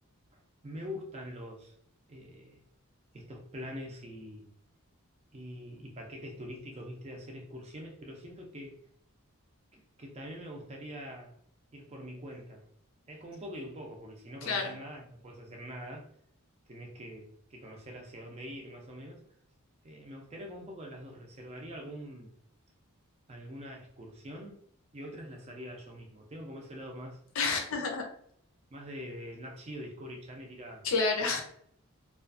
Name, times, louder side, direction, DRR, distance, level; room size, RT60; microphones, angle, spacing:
voice 1, 0.3-1.7 2.1-2.6 3.1-4.5 5.3-8.7 9.7-11.4 11.7-12.7 13.1-16.1 16.7-19.2 19.8-22.3 23.3-24.6 24.9-27.2 27.8-27.9 28.7-30.9 31.2-31.3, equal, 30° right, 1 dB, 0.5 m, -44 dB
voice 2, 14.4-14.7 27.4-28.0 30.8-31.4, left 4 dB, 70° left, 3 dB, 0.6 m, -29 dB
2.4 x 2.3 x 2.5 m, 0.67 s
head